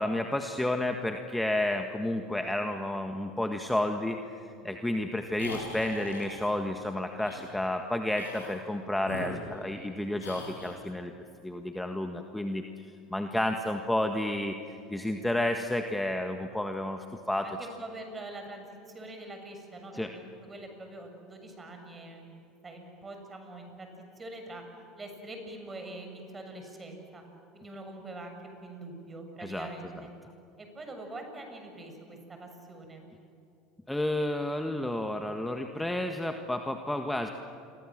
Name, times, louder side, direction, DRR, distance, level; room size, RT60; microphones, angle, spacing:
voice 1, 0.0-11.1 11.4-12.6 13.1-14.6 14.9-17.5 19.9-20.1 29.4-29.7 33.9-37.3, left 1 dB, 5° left, 5 dB, 1.7 m, -31 dB
sound 1, 5.4-6.5 7.2-7.4 8.1-8.6 9.0-9.9 10.2-10.8, left 3 dB, 90° left, 6.3 m, -42 dB
voice 2, 17.4-23.9 24.2-24.6 25.0-27.2 27.5-30.1 30.6-33.0, right 2 dB, 25° right, 4 dB, 7.0 m, -44 dB
29.0 x 23.5 x 7.6 m, 2.8 s
hypercardioid pair, 80°, 0 cm